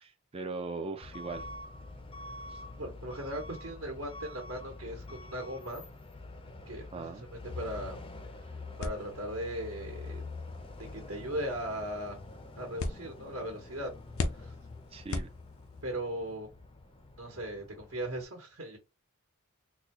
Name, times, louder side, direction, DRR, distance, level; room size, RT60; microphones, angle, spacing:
voice 1, 0.0-1.4 2.5-2.6 6.9-7.3 14.9-15.3, right 3 dB, 25° right, 0.4 m, -39 dB
Truck / Alarm, 1.0-18.2, left 2 dB, 25° left, 0.5 m, -46 dB
voice 2, 2.7-5.8 6.7-8.0 8.8-10.2 10.8-12.2 12.6-13.9 14.3-14.5 15.8-16.5 17.2-18.8, right 1 dB, 65° right, 1.2 m, -38 dB
sound 1, 8.8-15.9, left 2 dB, 70° left, 0.6 m, -41 dB
4.0 x 2.3 x 2.9 m
head